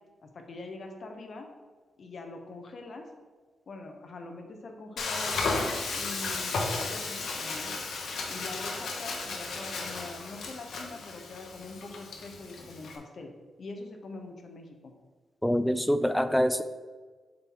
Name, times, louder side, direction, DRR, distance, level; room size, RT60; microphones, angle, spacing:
voice 1, 0.2-1.5 2.0-3.1 3.7-5.4 5.9-7.7 8.3-13.3 13.6-14.9, left 3 dB, 50° left, 4 dB, 1.0 m, -43 dB
Frying (food), 5.0-13.0, left 3 dB, 75° left, 1.1 m, -34 dB
voice 2, 15.4-16.6, equal, 5° left, 11 dB, 0.4 m, -25 dB
7.5 x 4.6 x 3.9 m, 1.4 s
wide cardioid pair, 125°, 0 cm